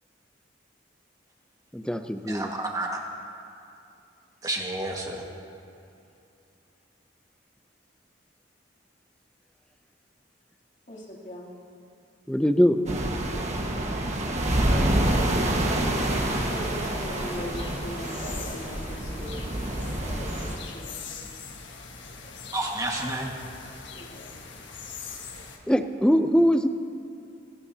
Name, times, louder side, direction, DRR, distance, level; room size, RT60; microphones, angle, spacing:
voice 1, 1.7-2.5 12.3-12.8 25.7-26.7, equal, 5° left, 8 dB, 0.5 m, -22 dB
voice 2, 2.3-3.0 4.4-5.3 22.5-23.3, right 2 dB, 20° right, 0 dB, 1.7 m, -30 dB
voice 3, 10.9-11.5 13.3-13.5 14.5-15.0 15.4-19.6 20.0-20.9 23.4-23.6 23.9-24.4, equal, 40° left, -4 dB, 3.0 m, -40 dB
sound 1, 12.9-20.6, right 1 dB, 40° right, 1.5 m, -27 dB
sound 2, 16.0-25.6, left 5 dB, 70° left, 1.6 m, -42 dB
24.5 x 16.0 x 2.9 m, 2.7 s
head